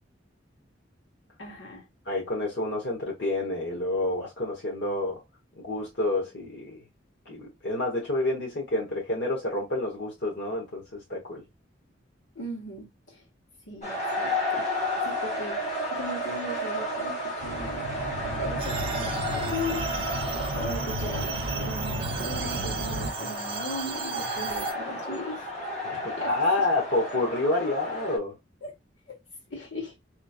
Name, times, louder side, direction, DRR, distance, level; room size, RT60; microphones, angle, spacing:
voice 1, 1.4-1.9 12.3-13.2 13.7-15.6 15.9-17.8 18.4-19.8 20.5-25.5 26.2-26.3 26.6-26.7 28.6-28.7 29.1-29.2 29.5-30.0, left 1 dB, 85° left, 1.6 m, -38 dB
voice 2, 2.1-5.2 5.6-6.8 7.3-11.4 25.8-28.3, left 2 dB, 65° left, 1.1 m, -29 dB
sound 1, 13.8-28.2, equal, 40° left, 1.6 m, -32 dB
sound 2, 17.4-23.1, right 1 dB, 75° right, 0.5 m, -34 dB
sound 3, 18.6-24.7, right 6 dB, 30° right, 0.6 m, -37 dB
3.9 x 3.1 x 2.4 m
head